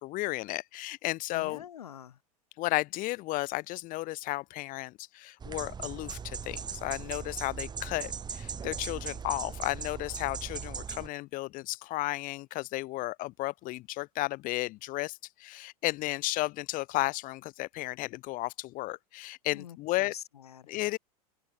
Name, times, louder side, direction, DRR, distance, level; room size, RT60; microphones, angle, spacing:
voice 1, 0.0-1.6 2.6-20.1 20.7-21.0, left 19 dB, 45° left, 3.0 m, -33 dB
voice 2, 1.3-2.2 19.5-20.7, left 10 dB, 70° left, 3.1 m, -46 dB
sound 1, 5.4-11.1, right 6 dB, 20° right, 3.6 m, -39 dB
figure-of-eight pair, 85°, 20 cm